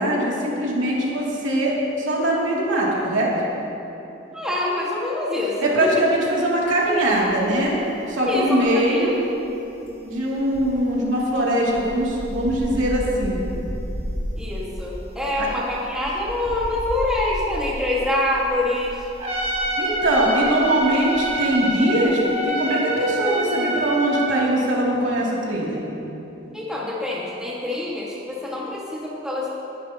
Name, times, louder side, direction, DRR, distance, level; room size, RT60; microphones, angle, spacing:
voice 1, 0.0-3.3 5.6-7.8 8.1-9.1 10.0-13.4 15.4-15.5 19.8-25.9, right 1 dB, 80° right, -5 dB, 2.8 m, -21 dB
voice 2, 4.3-5.9 8.3-9.1 14.4-19.0 26.5-29.5, left 1 dB, 5° right, -6 dB, 1.8 m, -25 dB
sound 1, 7.1-7.9 8.2-21.7 22.0-22.2, equal, 80° left, 3.3 m, -34 dB
Trumpet, 19.2-24.4, right 1 dB, 30° right, 1.7 m, -26 dB
20.0 x 11.5 x 3.0 m, 3.0 s
head